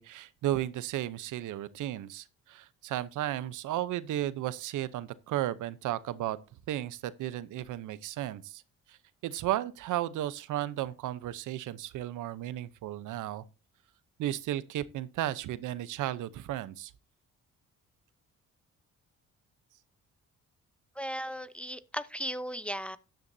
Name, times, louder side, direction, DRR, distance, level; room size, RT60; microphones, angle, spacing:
voice 1, 0.0-6.4 6.7-8.6 8.9-9.0 9.2-13.4 14.2-16.9, right 13 dB, 80° right, 0.8 m, -34 dB
voice 2, 21.0-23.0, equal, 5° left, 0.7 m, -36 dB
13.0 x 10.5 x 2.7 m
cardioid pair, 90°, 30 cm